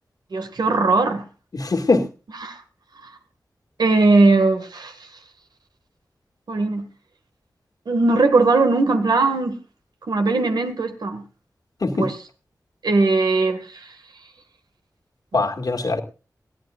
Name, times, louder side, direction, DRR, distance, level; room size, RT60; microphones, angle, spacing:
voice 1, 0.3-1.2 2.4-2.6 3.8-4.9 6.5-6.8 7.9-9.6 10.1-11.2 12.0-12.1 12.8-13.9, right 3 dB, 80° right, 2.0 m, -19 dB
voice 2, 1.5-2.1 11.8-12.1 15.3-16.0, left 3 dB, 65° left, 2.1 m, -21 dB
20.5 x 14.0 x 2.5 m
cardioid pair, 55°, 7 cm